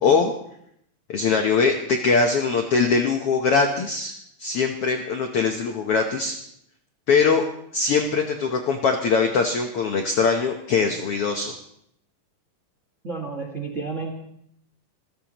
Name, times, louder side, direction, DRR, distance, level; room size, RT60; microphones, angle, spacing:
voice 1, 0.0-0.3 1.1-6.4 7.1-7.4 7.7-11.5, left 4 dB, 75° left, 4 dB, 1.3 m, -22 dB
voice 2, 13.0-14.1, right 4 dB, 40° right, 0 dB, 1.0 m, -31 dB
26.5 x 15.5 x 3.0 m, 0.72 s
omnidirectional pair, 4.0 m